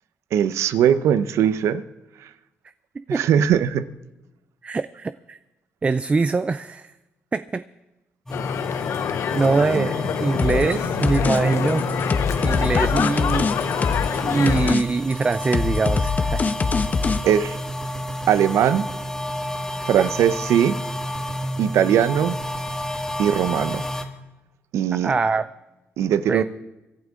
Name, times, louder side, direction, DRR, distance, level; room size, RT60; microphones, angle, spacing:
voice 1, 0.3-1.8 3.1-3.8 9.7-9.9 17.2-17.6 18.3-18.9 19.9-20.8 21.6-22.4 23.2-23.8 24.7-25.1 26.0-26.4, right 9 dB, 80° right, 13 dB, 0.8 m, -20 dB
voice 2, 4.6-5.4 5.8-6.9 7.3-7.6 8.7-8.8 9.3-11.9 12.4-13.5 14.2-16.4 20.0-20.1 24.9-25.5 26.3-26.4, right 4 dB, 25° right, 13 dB, 0.4 m, -23 dB
sound 1, 8.3-14.8, left 8 dB, 65° left, 0.7 m, -26 dB
sound 2, 8.3-24.0, equal, 10° left, 2.0 m, -31 dB
sound 3, 10.4-10.7 11.0-11.4 11.7-14.2 14.5-14.8 15.1-17.2, left 4 dB, 35° left, 1.2 m, -23 dB
26.0 x 11.5 x 3.7 m, 1.0 s
cardioid pair, 80°, 5 cm